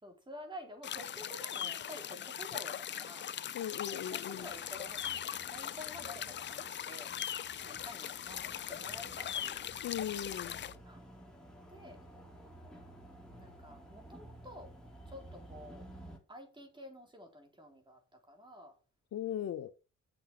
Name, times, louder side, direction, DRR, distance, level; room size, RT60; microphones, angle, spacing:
voice 1, 0.0-3.3 3.9-7.1 7.6-9.7 10.8-11.0 11.7-12.0 13.4-14.7 15.1-15.8 16.3-18.7, equal, 15° right, 4.2 m, -50 dB
sound 1, 0.8-10.7, left 10 dB, 40° left, 0.5 m, -40 dB
voice 2, 3.5-4.5 9.8-10.6 19.1-19.7, left 10 dB, 60° left, 0.8 m, -38 dB
sound 2, 4.4-16.2, right 1 dB, 5° left, 3.7 m, -54 dB
8.4 x 7.1 x 6.1 m
cardioid pair, 90°, 30 cm